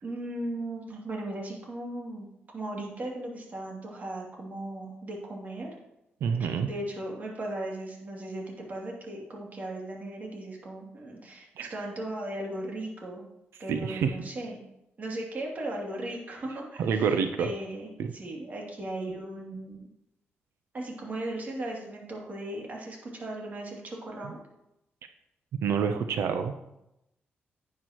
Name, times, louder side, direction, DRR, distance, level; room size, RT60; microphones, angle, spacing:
voice 1, 0.0-5.7 6.4-13.2 13.6-14.6 15.0-19.9 20.7-24.4, right 1 dB, 40° right, -1 dB, 2.7 m, -37 dB
voice 2, 6.2-6.7 11.6-11.7 13.7-14.1 16.8-17.5 18.0-18.1 25.6-26.5, right 6 dB, 90° right, 7 dB, 0.7 m, -27 dB
11.0 x 9.4 x 3.0 m, 0.86 s
cardioid pair, 120°, 4 cm